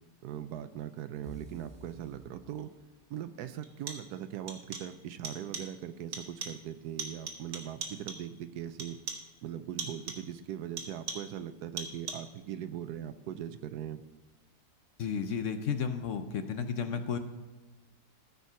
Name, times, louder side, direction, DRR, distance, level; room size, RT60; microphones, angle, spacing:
voice 1, 0.2-2.7 3.1-9.0 9.4-14.0, right 10 dB, 80° right, 12 dB, 1.2 m, -40 dB
sound 1, 1.2-3.0, right 2 dB, 40° right, 1.1 m, -51 dB
sound 2, 2.6-2.7 3.6-4.2 4.5-5.0 5.2-5.8 6.1-6.7 7.0-8.3 8.8-9.4 9.8-10.3 10.8-11.4 11.8-12.4, right 4 dB, 65° right, 1.6 m, -41 dB
voice 2, 15.0-17.2, left 6 dB, 60° left, 8 dB, 0.9 m, -33 dB
13.5 x 4.7 x 5.6 m, 1.2 s
omnidirectional pair, 1.7 m